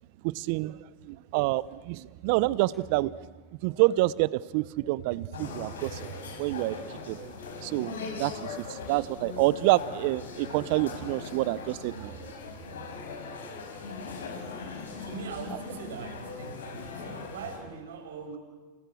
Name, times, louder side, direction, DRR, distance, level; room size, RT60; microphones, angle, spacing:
voice 1, 0.2-3.1 3.5-6.1 6.4-12.1, right 18 dB, 60° right, 19 dB, 1.0 m, -28 dB
sound 1, 2.7-4.6, right 1 dB, 10° left, 6.7 m, -56 dB
sound 2, 5.3-17.6, left 4 dB, 80° left, 5.3 m, -40 dB
voice 2, 14.9-18.4, right 6 dB, 75° right, 5 dB, 5.8 m, -41 dB
29.5 x 29.0 x 6.5 m, 1.3 s
hypercardioid pair, 95°, 0 cm